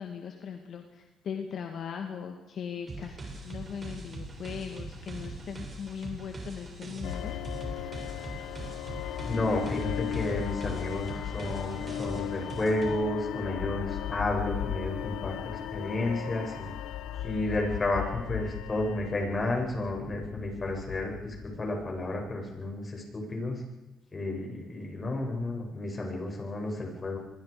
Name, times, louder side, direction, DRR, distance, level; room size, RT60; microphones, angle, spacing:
voice 1, 0.0-7.4, left 7 dB, 65° left, 4 dB, 2.3 m, -39 dB
sound 1, 2.9-13.0, right 2 dB, 35° right, 7.4 m, -41 dB
sound 2, 7.0-22.3, left 11 dB, 85° left, 1.2 m, -36 dB
voice 2, 9.3-15.3 15.7-16.7 17.2-23.6 24.1-27.2, left 2 dB, 30° left, 0 dB, 7.8 m, -32 dB
27.0 x 22.0 x 5.2 m, 1.1 s
cardioid pair, 90°, 0 cm